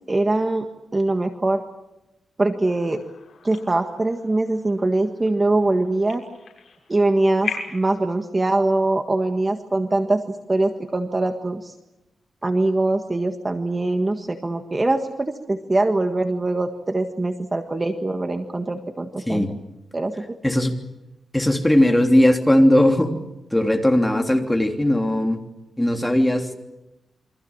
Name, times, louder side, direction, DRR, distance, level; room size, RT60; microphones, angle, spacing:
voice 1, 0.1-0.6 0.9-1.6 2.4-3.0 3.4-6.2 6.9-10.2 10.5-11.7 12.4-19.5 19.9-20.2, right 2 dB, 20° right, 6 dB, 1.6 m, -22 dB
sound 1, 2.6-7.9, left 5 dB, 60° left, 6.9 m, -38 dB
voice 2, 20.4-20.7 21.3-23.1 23.5-25.4 25.8-26.5, left 1 dB, 5° left, 3 dB, 3.1 m, -18 dB
28.5 x 24.5 x 7.3 m, 0.96 s
wide cardioid pair, 130°, 0 cm